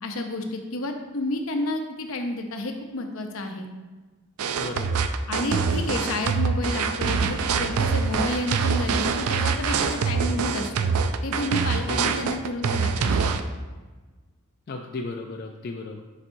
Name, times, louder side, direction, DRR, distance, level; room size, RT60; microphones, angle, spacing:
voice 1, 0.0-3.7 5.3-10.9 11.2-13.3, left 2 dB, 65° left, 4 dB, 0.7 m, -30 dB
sound 1, 4.4-13.4, right 5 dB, 75° right, 0.4 m, -25 dB
voice 2, 4.6-5.0 11.9-12.2 14.7-16.0, left 3 dB, 45° left, 1 dB, 0.4 m, -34 dB
10.5 x 4.2 x 2.7 m, 1.3 s
head